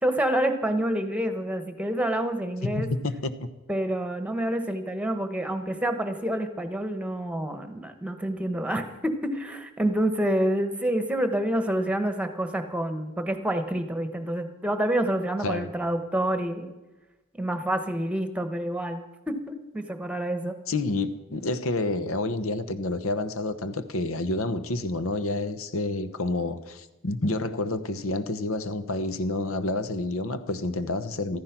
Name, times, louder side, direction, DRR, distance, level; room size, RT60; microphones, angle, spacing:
voice 1, 0.0-2.9 3.7-16.7 17.3-20.6, right 1 dB, 5° right, 1.2 m, -28 dB
voice 2, 2.6-3.3 15.4-15.7 20.7-31.4, left 2 dB, 85° left, 1.1 m, -29 dB
14.0 x 14.0 x 6.0 m
head